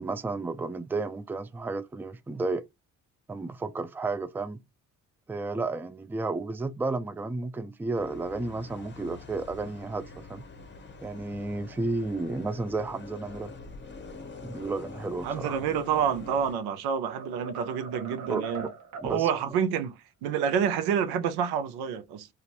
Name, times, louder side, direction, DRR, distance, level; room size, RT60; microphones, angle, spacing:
voice 1, 0.0-2.7 3.3-4.6 5.3-10.4 11.0-13.5 14.4-15.6 18.3-18.4 19.0-19.3, right 3 dB, 5° right, 0.4 m, -32 dB
sound 1, 7.9-16.5, left 4 dB, 30° left, 0.8 m, -45 dB
voice 2, 15.2-18.7 19.0-22.3, right 8 dB, 80° right, 0.6 m, -28 dB
sound 2, 16.2-16.7 17.1-19.2, right 4 dB, 50° right, 1.0 m, -41 dB
2.5 x 2.4 x 2.9 m
hypercardioid pair, 50°, 38 cm